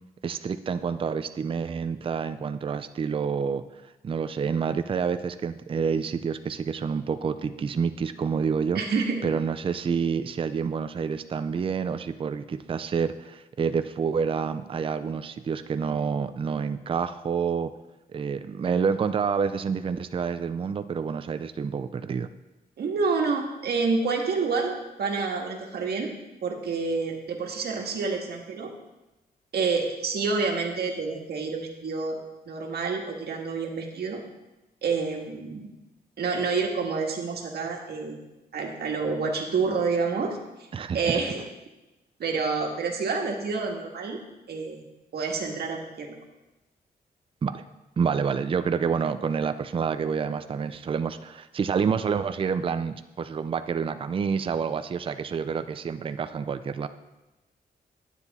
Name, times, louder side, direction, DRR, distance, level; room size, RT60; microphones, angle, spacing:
voice 1, 0.2-3.6 4.0-8.8 9.2-17.7 18.1-22.3 40.7-41.2 47.4-47.6 48.0-56.9, right 6 dB, 35° right, 11 dB, 0.4 m, -28 dB
voice 2, 8.7-9.2 22.8-26.1 26.4-28.7 29.5-32.2 32.4-34.2 34.8-35.7 36.2-38.2 38.5-40.4 40.9-41.4 42.2-44.2 44.5-44.8 45.1-46.1, right 4 dB, 80° right, 1 dB, 1.6 m, -28 dB
9.9 x 9.4 x 4.1 m, 1.0 s
wide cardioid pair, 150°, 16 cm